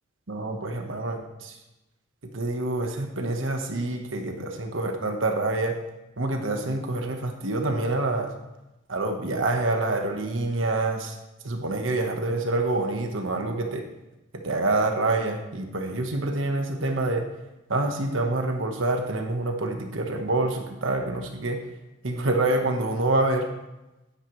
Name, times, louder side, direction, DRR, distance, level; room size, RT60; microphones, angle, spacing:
voice 1, 0.3-1.5 2.3-5.7 6.2-8.3 8.9-11.1 11.4-13.8 14.3-17.2 17.7-21.6 22.0-23.5, right 2 dB, 80° right, 4 dB, 1.4 m, -26 dB
10.5 x 9.8 x 3.3 m, 0.98 s
head